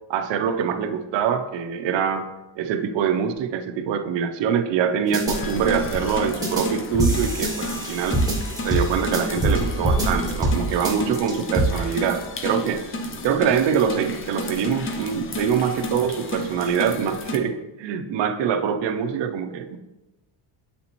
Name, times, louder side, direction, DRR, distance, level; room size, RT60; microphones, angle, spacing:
voice 1, 0.1-2.3 2.6-8.2 8.6-12.8 13.2-19.8, right 7 dB, 60° right, 7 dB, 0.6 m, -24 dB
sound 1, 5.1-5.4 6.4-6.7 7.0-9.6 9.8-10.6 10.8-11.6, right 1 dB, 10° right, 1.0 m, -23 dB
sound 2, 5.3-17.4, left 1 dB, 30° left, 0.3 m, -31 dB
7.7 x 4.2 x 2.9 m, 1.0 s
cardioid pair, 165°, 49 cm